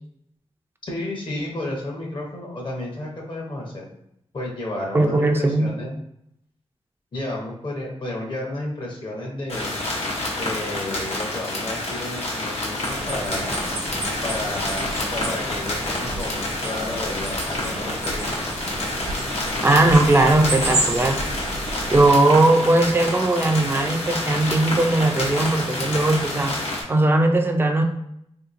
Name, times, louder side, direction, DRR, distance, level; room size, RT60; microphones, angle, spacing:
voice 1, 0.8-3.9 4.3-6.0 7.1-9.8 10.4-13.5 14.2-18.4, left 1 dB, 45° left, -1 dB, 0.8 m, -32 dB
voice 2, 4.9-5.7 19.6-21.2 21.9-26.6 26.9-27.8, right 2 dB, 20° right, 3 dB, 0.4 m, -18 dB
sound 1, 9.5-26.8, left 2 dB, 80° left, 0.8 m, -28 dB
sound 2, 12.8-22.1, right 2 dB, 85° right, 0.8 m, -31 dB
3.3 x 2.8 x 2.5 m, 0.76 s
wide cardioid pair, 105°, 11 cm